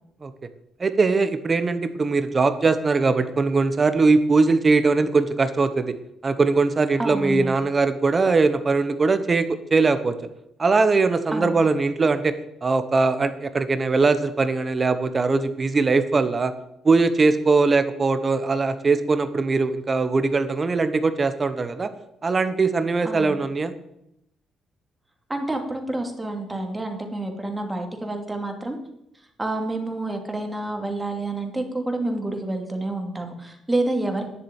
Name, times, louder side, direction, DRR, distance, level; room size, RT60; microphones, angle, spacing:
voice 1, 0.8-5.9 6.2-10.1 10.6-12.3 12.6-16.5 16.8-21.9 22.2-23.7, right 3 dB, 35° right, 11 dB, 1.1 m, -21 dB
voice 2, 7.0-7.5 11.3-11.5 23.0-23.3 25.3-28.8 29.4-34.2, right 2 dB, 15° right, 4 dB, 2.6 m, -28 dB
10.5 x 7.6 x 9.0 m, 0.81 s
cardioid pair, 90°, 0 cm